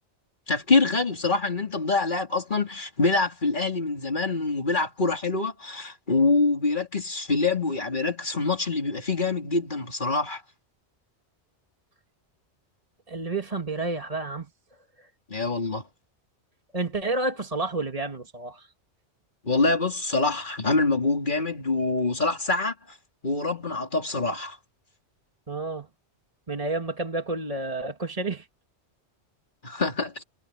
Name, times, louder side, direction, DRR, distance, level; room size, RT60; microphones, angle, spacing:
voice 1, 0.5-10.4 15.3-15.8 19.4-22.7 23.2-24.6 29.6-30.2, left 3 dB, 45° left, 3.3 m, -25 dB
voice 2, 13.1-14.5 15.0-15.1 16.7-18.7 25.5-25.9 26.5-28.5, right 3 dB, 30° right, 2.0 m, -30 dB
omnidirectional pair, 1.2 m